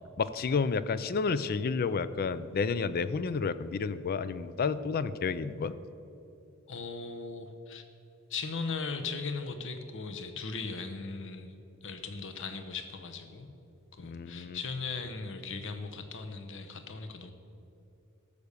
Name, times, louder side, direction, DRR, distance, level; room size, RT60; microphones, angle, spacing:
voice 1, 0.2-5.7 14.0-14.6, left 5 dB, 45° left, 15 dB, 0.4 m, -30 dB
voice 2, 6.7-7.8 8.3-11.5 11.8-13.5 13.9-17.3, left 4 dB, 60° left, 8 dB, 0.9 m, -38 dB
13.5 x 6.9 x 6.8 m, 2.9 s
head